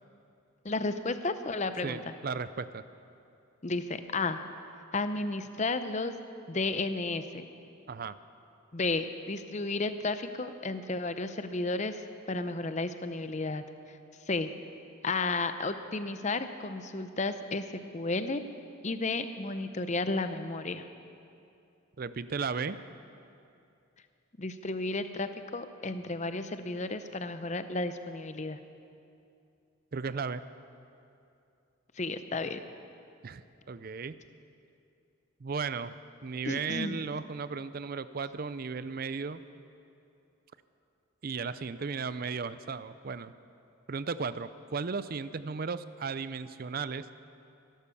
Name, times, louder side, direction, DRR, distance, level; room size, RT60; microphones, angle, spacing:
voice 1, 0.6-2.0 3.6-4.4 4.9-6.2 6.5-7.4 8.7-12.0 12.3-13.6 13.9-14.0 14.3-14.5 15.0-17.6 17.9-18.4 18.8-20.9 24.4-28.6 32.0-32.6 36.4-37.0, left 3 dB, 35° left, 10 dB, 0.6 m, -32 dB
voice 2, 1.8-2.8 7.9-8.2 22.0-22.8 29.9-30.4 33.2-34.2 35.4-35.9 36.2-39.4 41.2-43.3 43.9-47.1, right 5 dB, 45° right, 14 dB, 0.4 m, -35 dB
16.5 x 12.0 x 7.0 m, 2.6 s
head